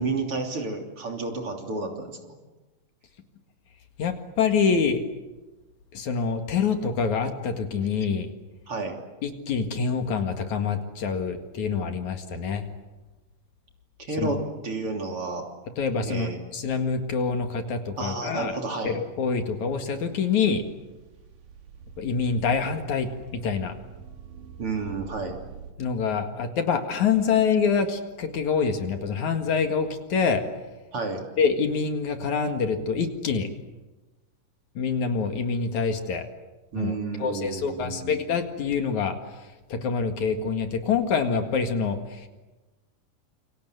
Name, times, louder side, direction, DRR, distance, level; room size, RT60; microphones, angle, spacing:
voice 1, 0.0-2.1 8.7-9.0 14.0-15.5 16.0-16.4 18.0-19.0 24.6-25.4 30.9-31.2 36.7-38.1, right 3 dB, 45° right, 3 dB, 3.8 m, -31 dB
voice 2, 4.0-5.0 5.9-8.3 9.2-12.6 14.2-14.4 15.8-18.6 18.8-20.6 22.0-23.8 25.8-30.4 31.4-33.5 34.8-36.3 36.7-39.4 39.7-42.3, left 5 dB, 65° left, 6 dB, 3.2 m, -26 dB
sound 1, 18.9-25.7, right 7 dB, 70° right, 3.9 m, -46 dB
28.5 x 25.5 x 8.1 m, 1.1 s
omnidirectional pair, 3.8 m